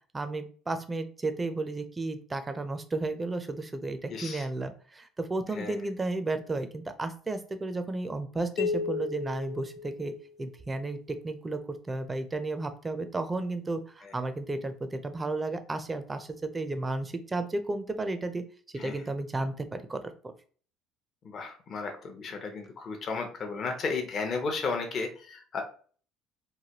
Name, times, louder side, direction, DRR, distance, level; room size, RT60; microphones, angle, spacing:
voice 1, 0.1-10.1 10.4-11.0 11.2-18.4 18.8-20.3, right 2 dB, 20° right, 9 dB, 0.4 m, -33 dB
voice 2, 4.1-4.4 5.5-5.8 14.0-14.2 18.8-19.0 21.2-25.6, left 4 dB, 45° left, 3 dB, 0.6 m, -34 dB
sound 1, 8.6-10.5, left 4 dB, 70° left, 1.0 m, -34 dB
3.2 x 2.2 x 2.8 m, 0.43 s
supercardioid pair, 100°, 0 cm